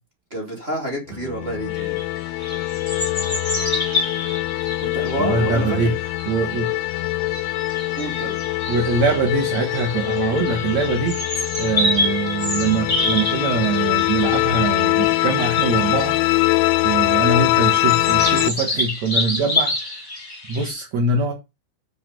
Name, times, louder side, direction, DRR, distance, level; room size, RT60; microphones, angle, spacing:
voice 1, 0.3-2.0 4.8-5.9 7.9-8.5, right 1 dB, 20° right, 1.8 m, -28 dB
sound 1, 1.1-18.5, left 20 dB, 90° left, 3.1 m, -23 dB
sound 2, 1.7-20.7, left 2 dB, 15° left, 1.9 m, -28 dB
voice 2, 5.2-5.9 6.3-6.7 8.7-16.2 16.8-20.1 20.5-21.3, right 4 dB, 65° right, 1.8 m, -23 dB
8.6 x 6.0 x 5.4 m
omnidirectional pair, 5.3 m